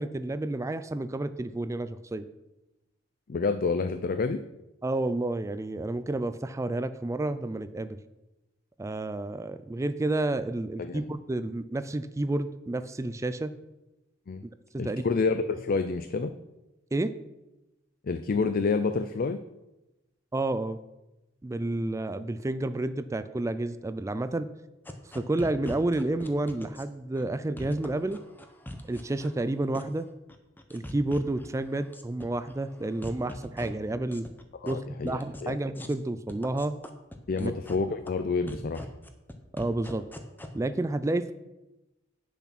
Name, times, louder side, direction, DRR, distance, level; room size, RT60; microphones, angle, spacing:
voice 1, 0.0-2.3 4.8-8.0 8.8-13.5 14.4-14.5 14.8-15.0 16.9-17.1 20.3-20.8 21.4-24.5 25.1-28.2 28.8-30.1 30.7-34.3 34.6-36.8 37.4-37.5 39.5-40.0 40.5-41.3, right 2 dB, 15° right, 12 dB, 0.3 m, -30 dB
voice 2, 3.3-4.4 10.8-11.0 14.3-14.4 14.8-16.3 18.0-19.4 34.6-35.6 37.3-38.9, left 4 dB, 45° left, 10 dB, 0.4 m, -28 dB
sound 1, 24.9-26.8 27.2-27.3 27.6-29.3 29.7-30.0 30.3-31.5 31.7-32.5 32.8-33.7 34.1-34.7 35.1-35.5 35.7-35.9 36.3-37.8 38.1-38.2 38.5-40.5, left 1 dB, 10° left, 0.8 m, -41 dB
8.5 x 7.1 x 5.9 m, 0.98 s
head